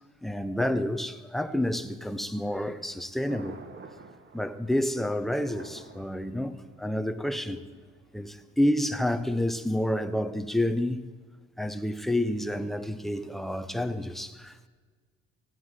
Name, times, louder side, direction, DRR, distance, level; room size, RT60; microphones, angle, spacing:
voice 1, 0.2-3.6 4.3-7.6 8.1-11.0 11.6-14.7, left 1 dB, ahead, 0.8 m, -29 dB
Thunder, 2.8-8.4, right 4 dB, 35° right, 1.4 m, -50 dB
15.5 x 9.3 x 7.5 m
cardioid pair, 90°, 30 cm